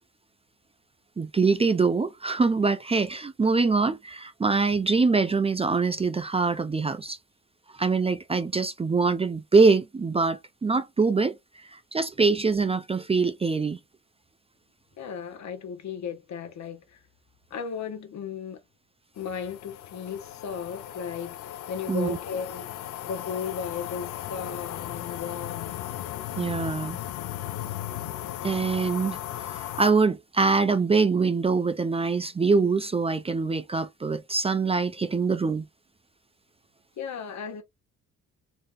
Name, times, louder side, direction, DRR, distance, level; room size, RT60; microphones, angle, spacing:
voice 1, 1.2-7.2 7.7-11.4 11.7-13.8 21.9-22.2 26.4-27.0 28.4-35.7, right 4 dB, 20° right, 0.5 m, -24 dB
voice 2, 15.0-17.0 17.5-18.6 19.1-22.7 23.0-25.9 37.0-37.6, left 7 dB, 65° left, 1.4 m, -35 dB
sound 1, 19.2-29.9, left 12 dB, 85° left, 0.6 m, -36 dB
4.0 x 3.5 x 2.6 m
cardioid pair, 90°, 30 cm